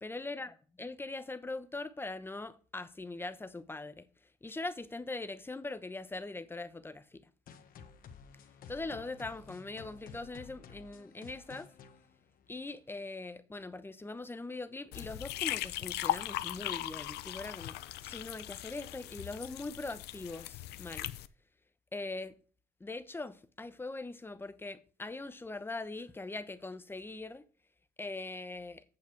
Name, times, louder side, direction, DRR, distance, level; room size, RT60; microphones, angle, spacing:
voice 1, 0.0-4.1 4.4-7.2 8.7-11.7 12.5-17.8 18.0-21.1 21.9-22.3 22.8-27.4 28.0-28.8, left 2 dB, 15° left, 0.9 m, -41 dB
sound 1, 7.5-12.9, left 6 dB, 55° left, 1.4 m, -53 dB
sound 2, 14.9-21.3, left 15 dB, 80° left, 0.6 m, -38 dB
8.5 x 6.9 x 4.6 m
cardioid pair, 110°, 17 cm